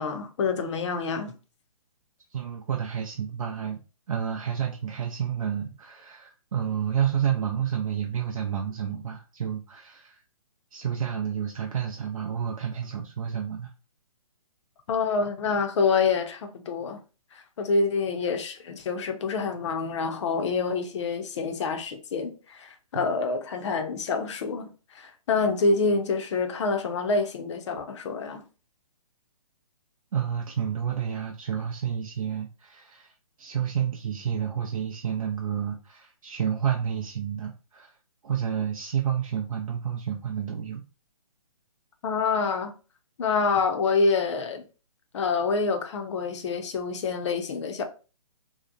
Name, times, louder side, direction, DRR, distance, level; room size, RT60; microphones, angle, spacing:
voice 1, 0.0-1.3 14.9-17.0 17.6-24.7 24.9-28.4 42.0-42.7 43.2-44.6 45.1-47.9, left 4 dB, 50° left, 0.5 m, -27 dB
voice 2, 2.3-3.8 4.1-10.2 10.7-13.7 22.9-23.0 30.1-33.1 33.4-38.0 38.2-40.8, right 8 dB, 65° right, 0.4 m, -30 dB
2.8 x 2.0 x 2.4 m
hypercardioid pair, 145°, 19 cm